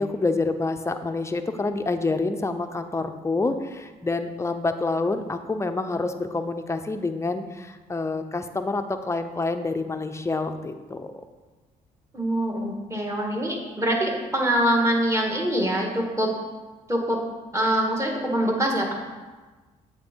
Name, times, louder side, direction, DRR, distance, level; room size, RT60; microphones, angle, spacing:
voice 1, 0.0-11.1, left 3 dB, 15° left, 7 dB, 0.6 m, -27 dB
voice 2, 12.1-16.3 16.9-17.2 17.5-18.9, right 1 dB, 15° right, 0 dB, 1.7 m, -24 dB
7.9 x 3.4 x 4.5 m, 1.3 s
supercardioid pair, 60°, 17 cm